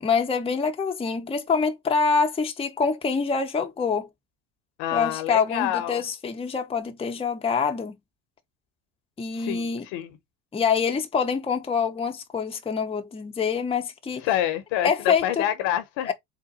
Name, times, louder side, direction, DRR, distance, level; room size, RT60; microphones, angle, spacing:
voice 1, 0.0-4.1 4.9-8.0 9.2-9.9 10.5-14.2 14.8-15.5 16.1-16.2, left 5 dB, 10° left, 0.7 m, -25 dB
voice 2, 4.8-6.0 9.4-10.2 14.2-16.1, left 12 dB, 60° left, 1.0 m, -27 dB
3.8 x 2.2 x 4.1 m
supercardioid pair, 90°, 50 cm